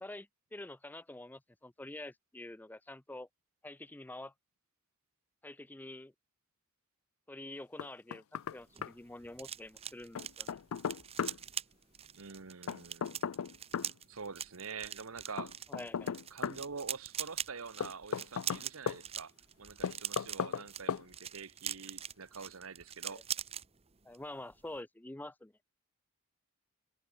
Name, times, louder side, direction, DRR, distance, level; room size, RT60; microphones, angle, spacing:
voice 1, 0.0-3.3 3.6-4.3 5.4-6.1 7.3-8.2 8.5-10.5 15.7-16.1 23.1-23.2 24.0-25.5, left 1 dB, 10° left, 0.4 m, -47 dB
Knock, 7.8-8.6 8.8-8.9 10.1-11.4 12.7-13.9 15.4-16.6 17.8-19.0 19.8-20.6 20.9-21.0, left 7 dB, 75° left, 0.4 m, -36 dB
sound 1, 8.5-23.7 24.0-24.3 24.5-24.8, right 9 dB, 25° right, 1.0 m, -43 dB
voice 2, 12.1-13.2 14.1-15.6 16.3-19.3 19.6-23.2, right 5 dB, 75° right, 1.1 m, -46 dB
head